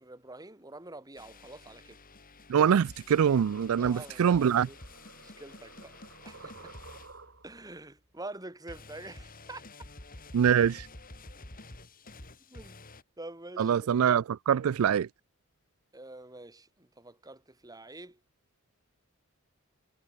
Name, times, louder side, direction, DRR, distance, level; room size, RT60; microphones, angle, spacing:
voice 1, 0.0-2.0 3.8-4.8 5.2-6.0 6.2-6.7 7.4-9.6 12.5-12.9 13.2-14.0 15.9-18.2, right 2 dB, 15° right, 2.5 m, -46 dB
sound 1, 1.2-7.9 8.7-13.0, left 2 dB, 40° left, 4.0 m, -50 dB
voice 2, 2.5-4.7 10.3-10.9 13.6-15.1, right 8 dB, 75° right, 0.4 m, -24 dB
sound 2, 3.0-7.7, right 4 dB, 60° right, 4.9 m, -53 dB
head